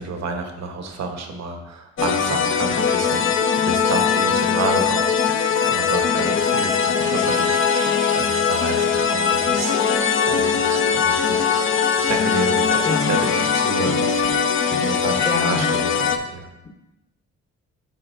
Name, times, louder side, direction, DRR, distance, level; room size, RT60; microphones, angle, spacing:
voice 1, 0.0-16.5, right 4 dB, 60° right, 4 dB, 1.1 m, -30 dB
sound 1, 2.0-16.2, left 6 dB, 45° left, 0.6 m, -20 dB
sound 2, 7.0-15.3, right 3 dB, 85° right, 1.6 m, -40 dB
voice 2, 15.2-15.9, left 3 dB, 25° left, 0 dB, 0.9 m, -27 dB
11.5 x 4.2 x 2.6 m, 0.93 s
cardioid pair, 90°, 30 cm